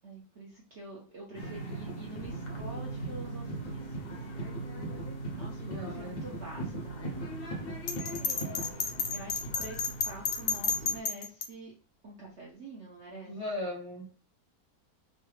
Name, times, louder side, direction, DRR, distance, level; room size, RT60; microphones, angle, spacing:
voice 1, 0.0-5.0 5.3-7.6 8.2-11.7 12.0-13.3, right 2 dB, 55° right, -4 dB, 0.8 m, -47 dB
sound 1, 1.3-11.0, right 2 dB, 55° left, 0.6 m, -39 dB
voice 2, 5.6-6.2 13.3-14.1, left 1 dB, 15° right, -4 dB, 1.3 m, -38 dB
Bell, 7.9-11.5, left 5 dB, 90° left, 1.3 m, -31 dB
3.2 x 2.3 x 3.1 m, 0.41 s
omnidirectional pair, 1.8 m